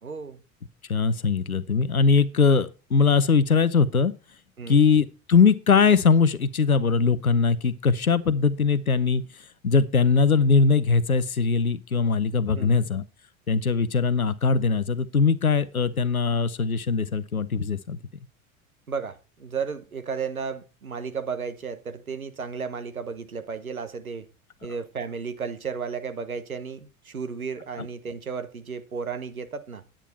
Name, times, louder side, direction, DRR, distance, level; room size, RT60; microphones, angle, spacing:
voice 1, 0.0-0.4 4.6-4.8 12.5-12.9 18.9-24.3 24.6-29.8, right 5 dB, 85° right, 1.1 m, -33 dB
voice 2, 0.9-4.1 4.7-9.2 9.6-13.0 13.5-18.0, left 5 dB, 90° left, 0.7 m, -21 dB
9.9 x 8.9 x 4.2 m
figure-of-eight pair, 75°, 42 cm